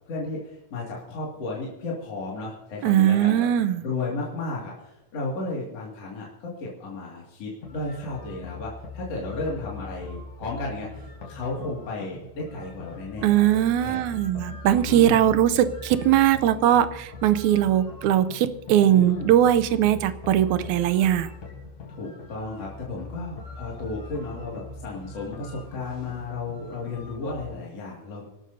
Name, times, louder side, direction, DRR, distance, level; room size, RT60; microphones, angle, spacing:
voice 1, 0.1-3.5 3.8-13.4 13.8-14.1 14.8-15.3 18.8-19.3 21.9-28.3, left 3 dB, 60° left, -4 dB, 3.3 m, -34 dB
voice 2, 2.8-3.8 13.2-21.3, right 11 dB, 90° right, 13 dB, 2.1 m, -20 dB
sound 1, 7.6-27.5, left 3 dB, 80° left, 4.7 m, -41 dB
26.0 x 12.5 x 2.7 m, 0.99 s
omnidirectional pair, 3.3 m